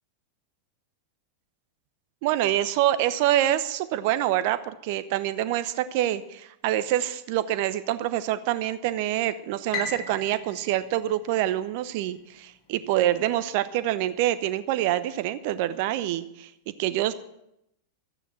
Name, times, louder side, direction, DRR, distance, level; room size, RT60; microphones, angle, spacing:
voice 1, 2.2-16.5 16.8-17.1, right 13 dB, 45° right, 14 dB, 0.8 m, -26 dB
Piano, 9.7-12.0, left 4 dB, 40° left, 4.0 m, -37 dB
13.0 x 9.1 x 7.5 m, 0.81 s
figure-of-eight pair, 90°, 0 cm